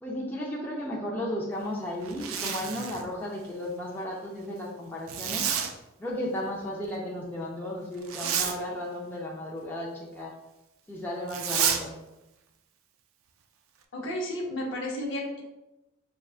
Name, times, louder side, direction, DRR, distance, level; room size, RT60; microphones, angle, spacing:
voice 1, 0.0-5.5 6.0-10.3 10.9-12.0, left 1 dB, 10° left, -4 dB, 0.5 m, -34 dB
Zipper (clothing), 2.0-3.1 5.1-5.7 8.0-8.6 11.3-11.8, right 8 dB, 75° right, 0.4 m, -29 dB
voice 2, 13.9-15.4, left 1 dB, 60° left, 1 dB, 0.8 m, -32 dB
6.3 x 2.3 x 2.4 m, 0.96 s
head